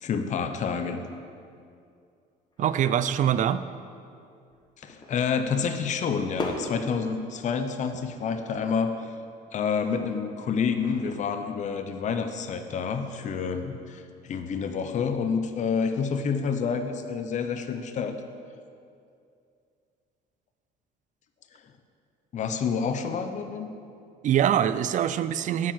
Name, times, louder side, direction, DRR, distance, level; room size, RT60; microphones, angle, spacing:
voice 1, 0.0-1.0 4.8-8.9 9.5-18.2 22.3-23.7, left 6 dB, 45° left, 7 dB, 0.7 m, -28 dB
sound 1, 2.5-3.4 3.8-3.9 4.5-6.0 6.3-7.5 7.9-10.2 10.7-11.3, left 2 dB, 25° left, 1.1 m, -40 dB
voice 2, 2.6-3.7 24.2-25.7, right 10 dB, 50° right, 14 dB, 0.4 m, -24 dB
9.5 x 4.6 x 7.4 m, 2.4 s
cardioid pair, 110°, 17 cm